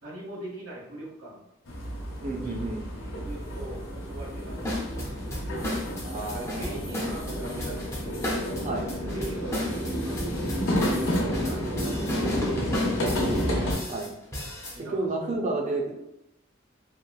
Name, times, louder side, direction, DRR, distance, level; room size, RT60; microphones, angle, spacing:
voice 1, 0.0-1.4 3.0-4.9 5.7-5.9 6.2-8.3 8.8-10.4 11.4-13.8 14.7-15.1, right 1 dB, 85° right, -4 dB, 1.1 m, -41 dB
sound 1, 1.7-13.7, equal, 85° left, 0.7 m, -30 dB
voice 2, 2.2-2.8 6.0-6.7 8.6-8.9 13.9-14.1 14.8-15.9, right 2 dB, 35° right, 2 dB, 0.4 m, -31 dB
sound 2, 4.6-14.8, left 1 dB, 15° left, 0.5 m, -33 dB
2.9 x 2.3 x 2.2 m, 0.86 s
head